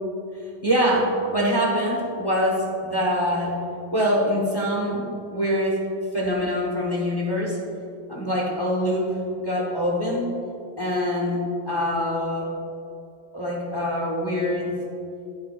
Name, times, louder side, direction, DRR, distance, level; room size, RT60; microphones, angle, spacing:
voice 1, 0.6-3.6 3.9-5.1 5.3-5.8 6.1-7.6 8.1-9.1 9.4-10.3 10.8-11.4 11.7-12.5 13.3-14.8, equal, 25° left, -3 dB, 0.5 m, -24 dB
11.0 x 8.6 x 2.4 m, 2.6 s
omnidirectional pair, 2.3 m